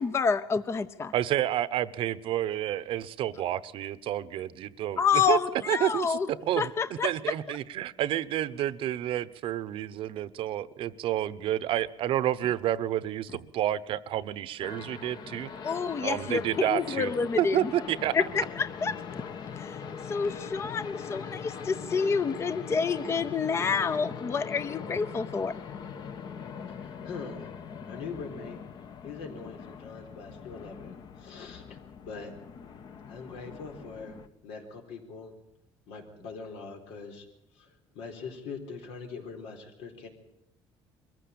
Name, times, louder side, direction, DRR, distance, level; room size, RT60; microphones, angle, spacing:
voice 1, 0.0-1.1 5.0-6.3 6.6-7.1 15.6-17.6 18.1-18.9 19.6-19.8 20.1-25.6, left 5 dB, 25° left, 13 dB, 0.7 m, -28 dB
voice 2, 1.1-5.4 5.7-15.5 16.0-17.1 17.4-18.2, right 12 dB, 60° right, 16 dB, 0.9 m, -30 dB
sound 1, 14.6-34.3, left 6 dB, 45° left, 1.1 m, -41 dB
voice 3, 26.7-27.5 27.9-28.6 29.0-31.8 32.0-32.3 33.1-34.1 34.4-35.3 35.9-37.3 37.6-37.7 37.9-40.1, left 4 dB, 85° left, 3 dB, 4.3 m, -42 dB
23.0 x 15.5 x 8.7 m, 0.86 s
cardioid pair, 135°, 10 cm